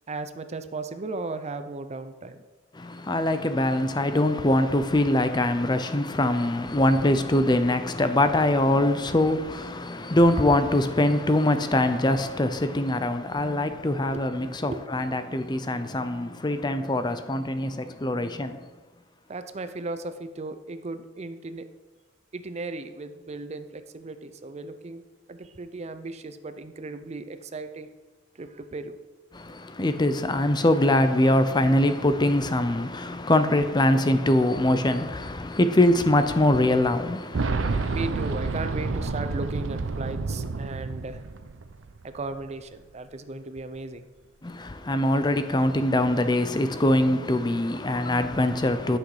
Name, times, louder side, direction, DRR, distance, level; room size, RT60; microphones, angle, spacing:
voice 1, 0.1-2.5 14.6-14.8 19.3-21.7 22.3-25.0 25.3-27.9 28.4-29.0 37.9-41.2 42.0-44.1, right 3 dB, 35° right, 0.5 m, -36 dB
voice 2, 2.7-18.6 29.3-38.0 44.4-49.0, left 1 dB, 20° left, 0.6 m, -23 dB
Boom, 37.3-42.1 42.3-42.4 43.6-43.7, right 3 dB, 85° right, 0.6 m, -29 dB
11.5 x 6.4 x 4.9 m
head